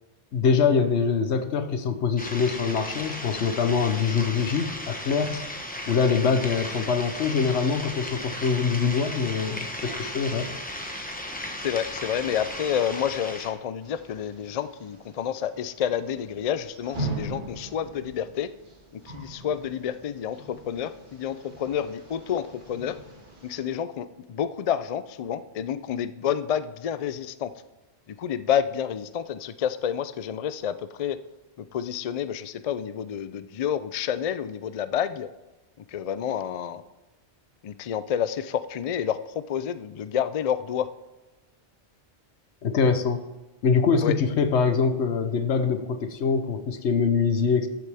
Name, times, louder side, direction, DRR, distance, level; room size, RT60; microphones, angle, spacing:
voice 1, 0.3-5.5 5.9-10.5 42.6-43.2 43.6-47.7, left 5 dB, 85° left, 9 dB, 1.1 m, -24 dB
sound 1, 2.2-13.5, left 1 dB, 10° left, 0.9 m, -36 dB
voice 2, 11.6-18.5 18.9-23.0 23.4-27.5 28.2-31.2 31.6-35.3 35.9-36.8 37.6-40.9 44.0-44.2, left 9 dB, 55° left, 13 dB, 0.4 m, -29 dB
sound 2, 13.8-23.6, right 1 dB, 45° right, 2.0 m, -40 dB
13.0 x 7.7 x 3.5 m, 1.1 s
omnidirectional pair, 1.1 m